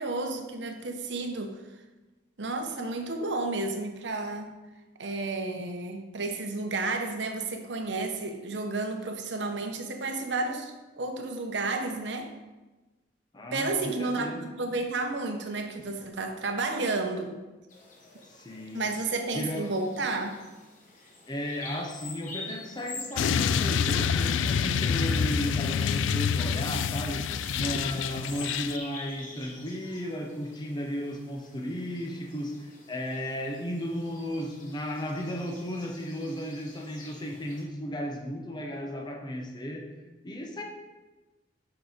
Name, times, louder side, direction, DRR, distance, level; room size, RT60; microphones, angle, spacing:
voice 1, 0.0-1.5 2.4-4.5 5.0-12.3 13.5-17.4 18.7-20.4, right 3 dB, 65° right, 5 dB, 0.8 m, -31 dB
voice 2, 13.3-14.5 18.3-19.0 19.3-19.7 21.3-39.9 40.2-40.6, equal, 25° left, 1 dB, 0.7 m, -34 dB
Bird vocalization bird call bird song, 17.7-37.6, left 3 dB, 45° left, 1.2 m, -48 dB
sound 1, 23.2-28.8, left 7 dB, 80° left, 0.3 m, -27 dB
7.3 x 4.8 x 4.0 m, 1.2 s
head